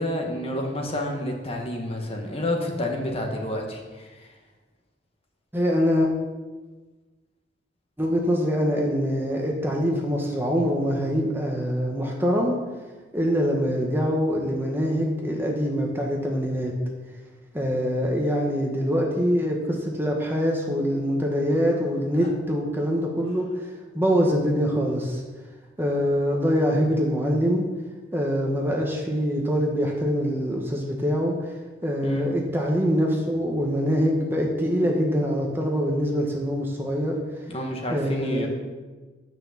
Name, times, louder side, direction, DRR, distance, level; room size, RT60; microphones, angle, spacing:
voice 1, 0.0-4.3 22.2-22.3 32.0-32.2 37.5-38.5, left 1 dB, 30° left, 1 dB, 1.5 m, -29 dB
voice 2, 5.5-6.1 8.0-12.5 13.1-16.7 17.5-23.4 23.9-25.2 25.8-27.6 28.1-31.3 31.8-37.2 37.9-38.5, equal, 10° right, 0 dB, 1.2 m, -24 dB
9.9 x 6.1 x 7.1 m, 1.3 s
head